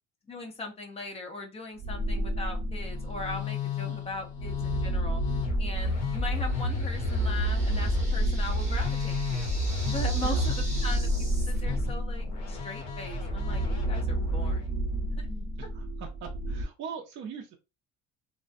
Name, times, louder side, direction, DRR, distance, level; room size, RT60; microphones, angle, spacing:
voice 1, 0.3-5.2 5.6-9.5 9.9-14.7 15.2-15.5, left 2 dB, 20° left, 3 dB, 0.5 m, -39 dB
sound 1, 1.8-3.5 4.1-16.7, right 1 dB, 60° right, 0.8 m, -31 dB
Musical instrument, 2.8-14.6, left 2 dB, 65° left, 0.7 m, -32 dB
sound 2, 5.7-11.6, right 1 dB, 25° right, 0.9 m, -44 dB
voice 2, 15.6-17.6, right 7 dB, 40° right, 3 dB, 0.4 m, -41 dB
2.4 x 2.1 x 2.5 m, 0.27 s
cardioid pair, 160°, 30 cm